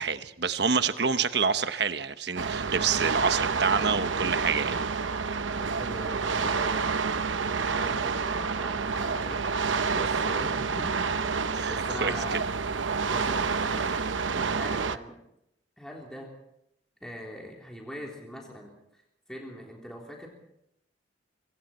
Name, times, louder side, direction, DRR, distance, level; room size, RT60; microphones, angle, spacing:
voice 1, 0.0-4.7 11.5-12.1, right 5 dB, 60° right, 10 dB, 1.1 m, -27 dB
sound 1, 2.4-15.0, right 5 dB, 80° right, 0.9 m, -28 dB
voice 2, 5.6-12.5 13.1-14.1 14.3-15.2 15.8-16.3 17.0-20.3, equal, 5° left, -2 dB, 3.5 m, -42 dB
25.5 x 24.5 x 4.4 m, 0.78 s
head